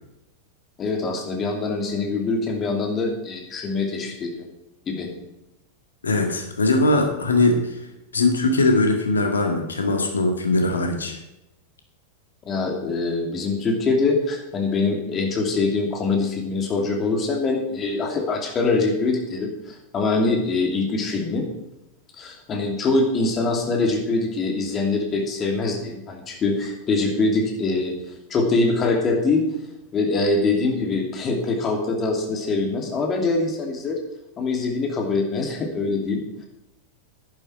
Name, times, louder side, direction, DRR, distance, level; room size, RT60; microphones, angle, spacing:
voice 1, 0.8-4.4 4.9-5.1 12.4-21.5 22.2-28.0 28.3-29.4 29.9-34.0 34.4-36.5, left 3 dB, 25° left, 2 dB, 2.6 m, -23 dB
voice 2, 6.0-7.8 8.1-11.2, left 2 dB, 70° left, 4 dB, 1.9 m, -20 dB
11.0 x 10.5 x 4.5 m, 0.93 s
figure-of-eight pair, 90°, 0 cm